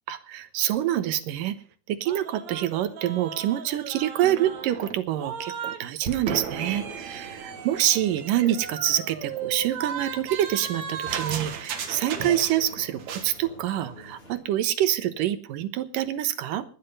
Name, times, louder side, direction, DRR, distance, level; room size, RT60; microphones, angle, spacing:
voice 1, 0.1-1.5 1.9-16.7, right 12 dB, 70° right, 12 dB, 2.5 m, -26 dB
sound 1, 2.1-5.8 6.0-12.7 13.0-13.3, right 7 dB, 55° right, 2.7 m, -35 dB
sound 2, 6.5-14.4, equal, 15° left, 7.2 m, -46 dB
18.0 x 11.5 x 5.3 m, 0.39 s
omnidirectional pair, 4.3 m